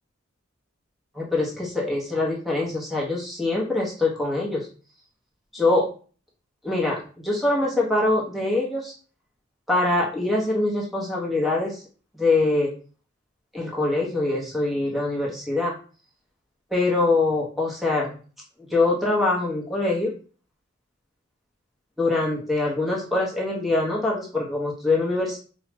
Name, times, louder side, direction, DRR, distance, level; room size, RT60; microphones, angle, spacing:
voice 1, 1.1-4.7 5.5-5.9 6.6-8.9 9.7-11.8 12.1-12.7 13.5-15.7 16.7-18.2 18.7-20.1 22.0-25.4, left 2 dB, ahead, -3 dB, 1.0 m, -24 dB
4.7 x 2.3 x 3.0 m, 0.39 s
head